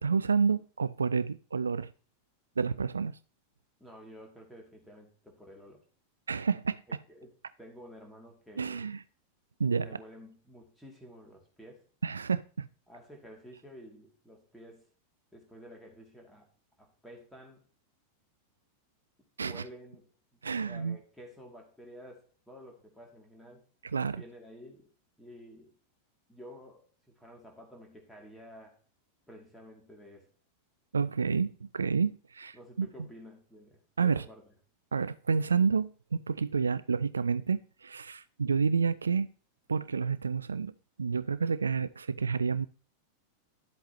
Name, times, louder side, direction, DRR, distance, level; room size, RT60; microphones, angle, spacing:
voice 1, 0.0-1.9 2.6-3.2 6.3-6.8 8.6-9.0 9.6-9.9 12.0-12.7 19.4-19.6 20.4-21.0 23.8-24.2 30.9-32.9 34.0-34.2 34.9-39.3 39.7-40.7 41.0-42.7, right 5 dB, 75° right, 0.3 m, -29 dB
voice 2, 3.8-5.8 6.9-8.9 9.7-11.8 12.9-14.9 15.3-16.5 16.8-17.6 19.5-20.1 20.6-23.7 24.2-24.9 25.2-25.8 26.3-28.8 29.3-30.3 32.5-34.4, equal, 5° left, 2.8 m, -51 dB
12.0 x 8.1 x 3.1 m
figure-of-eight pair, 90°, 0 cm